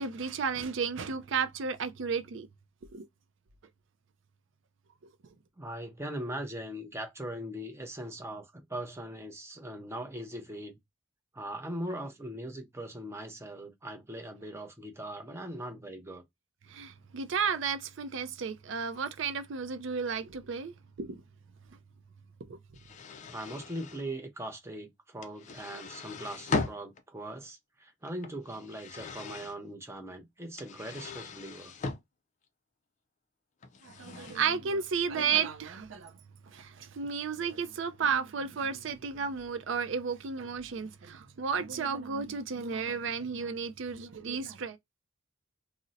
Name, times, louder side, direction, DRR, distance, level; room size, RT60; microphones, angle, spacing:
voice 1, 0.0-2.5 2.9-3.1 16.7-20.7 21.0-21.2 22.5-22.6 33.8-36.1 36.5-44.8, right 6 dB, 65° right, 0.4 m, -33 dB
voice 2, 5.6-10.8 11.3-16.2 23.3-31.7, right 1 dB, 15° right, 0.5 m, -40 dB
sound 1, 22.7-24.0 25.2-27.0 28.0-29.5 30.6-32.0 33.6-34.5, left 4 dB, 35° left, 0.4 m, -38 dB
2.5 x 2.0 x 3.9 m
head